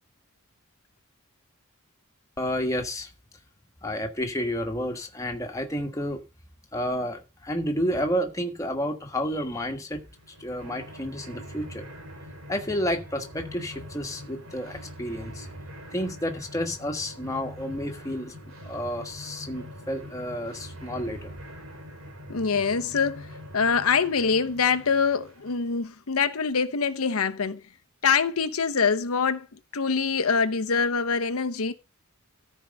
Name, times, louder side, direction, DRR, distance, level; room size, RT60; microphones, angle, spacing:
voice 1, 2.4-3.1 3.8-6.2 6.7-10.0 10.4-11.9 12.5-15.5 15.9-18.3 18.6-21.3, equal, 15° left, 1.5 m, -30 dB
sound 1, 10.0-25.7, equal, 70° right, 2.7 m, -43 dB
voice 2, 22.3-23.3 23.5-27.6 28.0-29.5 29.7-31.7, left 5 dB, 90° left, 0.9 m, -24 dB
13.5 x 4.7 x 6.4 m
head